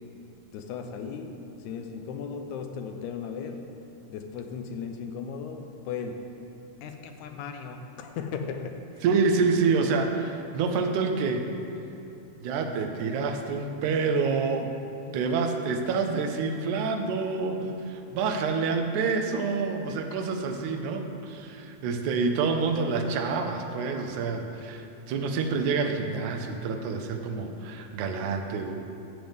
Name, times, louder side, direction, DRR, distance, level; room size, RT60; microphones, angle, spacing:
voice 1, 0.5-3.6 4.1-6.3 6.8-9.0, left 6 dB, 90° left, 6 dB, 2.1 m, -36 dB
voice 2, 9.0-11.5 12.4-14.8 15.1-28.8, right 4 dB, 85° right, 4 dB, 2.1 m, -27 dB
13.0 x 7.8 x 3.5 m, 2.7 s
omnidirectional pair, 3.4 m